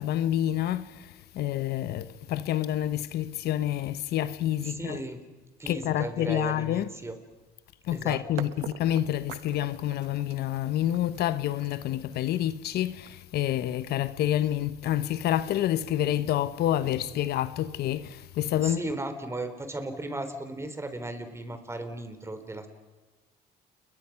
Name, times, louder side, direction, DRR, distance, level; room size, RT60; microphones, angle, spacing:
voice 1, 0.0-5.0 5.7-6.9 7.9-18.8, left 12 dB, 70° left, 1.0 m, -28 dB
voice 2, 4.7-5.2 5.6-7.1 7.9-8.5 18.6-22.7, right 2 dB, 15° right, 3.4 m, -36 dB
sound 1, 8.4-14.2, right 14 dB, 90° right, 1.1 m, -45 dB
29.5 x 22.5 x 5.8 m
cardioid pair, 110°, 17 cm